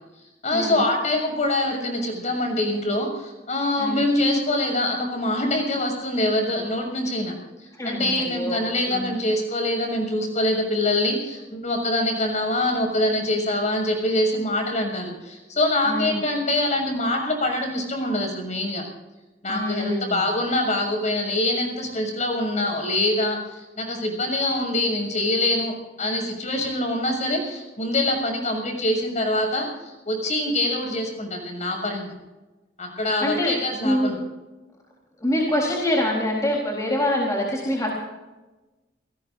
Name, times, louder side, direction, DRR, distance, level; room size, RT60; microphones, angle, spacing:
voice 1, 0.4-7.3 7.8-18.8 19.4-32.1 32.8-34.2, left 1 dB, 45° left, 3 dB, 6.6 m, -24 dB
voice 2, 7.7-8.6 8.8-9.1 12.0-12.1 15.8-16.2 19.5-20.2 33.2-33.5 33.8-34.1 35.2-37.9, left 1 dB, 20° left, -3 dB, 3.8 m, -25 dB
28.5 x 18.0 x 2.6 m, 1.1 s
head